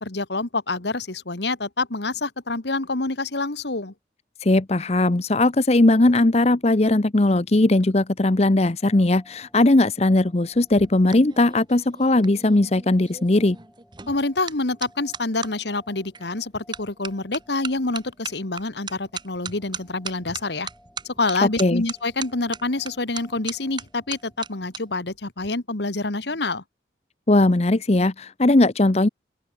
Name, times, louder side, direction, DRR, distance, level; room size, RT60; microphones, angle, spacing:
voice 1, 0.0-3.9 14.1-20.7 21.1-26.6, left 3 dB, 65° left, 1.7 m, -27 dB
voice 2, 4.4-13.6 21.6-21.8 27.3-29.1, left 2 dB, 35° left, 0.8 m, -19 dB
sound 1, 8.8-24.9, equal, 5° left, 5.8 m, -57 dB
sound 2, 10.5-15.5 16.1-16.4 16.7-24.8 25.1-25.5, right 6 dB, 25° right, 1.0 m, -38 dB
open air
head